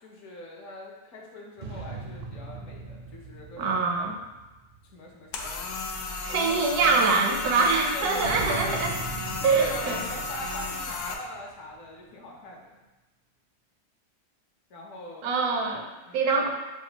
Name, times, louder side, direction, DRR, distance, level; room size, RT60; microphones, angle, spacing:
voice 1, 0.0-4.1 4.9-5.7 6.0-6.7 7.6-8.9 9.4-12.8 14.7-15.7 16.0-16.5, left 1 dB, 55° left, -3 dB, 1.1 m, -43 dB
sound 1, 1.6-5.3 8.2-12.0, right 3 dB, 50° right, 0.6 m, -40 dB
voice 2, 3.6-4.2 6.3-9.0 9.4-10.0 15.2-15.9 16.1-16.5, right 4 dB, 75° right, 2 dB, 1.1 m, -24 dB
sound 2, 5.3-11.1, left 4 dB, 80° left, 1.1 m, -34 dB
7.0 x 2.3 x 2.8 m, 1.1 s
omnidirectional pair, 1.7 m